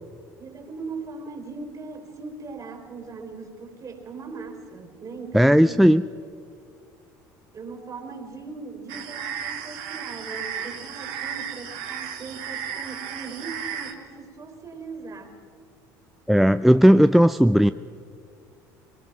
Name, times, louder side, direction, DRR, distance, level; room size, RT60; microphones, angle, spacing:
voice 1, 0.4-5.9 7.5-15.3, right 4 dB, 40° right, 5 dB, 4.0 m, -39 dB
voice 2, 5.3-6.0 16.3-17.7, equal, ahead, 12 dB, 0.4 m, -16 dB
sound 1, 8.9-13.9, right 8 dB, 70° right, 1.9 m, -34 dB
22.5 x 19.0 x 6.0 m, 2.3 s
hypercardioid pair, 75°, 10 cm